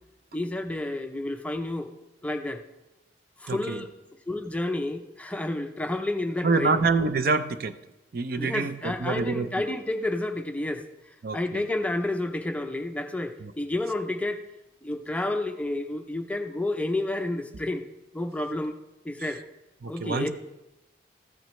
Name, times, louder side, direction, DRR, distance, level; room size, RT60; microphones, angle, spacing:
voice 1, 0.3-1.9 2.2-2.6 3.4-3.9 4.3-6.8 8.4-10.8 11.3-14.4 14.8-17.8 18.1-18.7 19.0-19.4 19.9-20.3, left 2 dB, 10° left, 6 dB, 0.5 m, -30 dB
voice 2, 3.5-3.8 6.4-7.8 8.1-9.5 11.2-11.7 13.4-13.5 19.2-19.3 19.8-20.3, right 4 dB, 55° right, 10 dB, 0.5 m, -26 dB
14.0 x 9.0 x 3.2 m, 0.95 s
head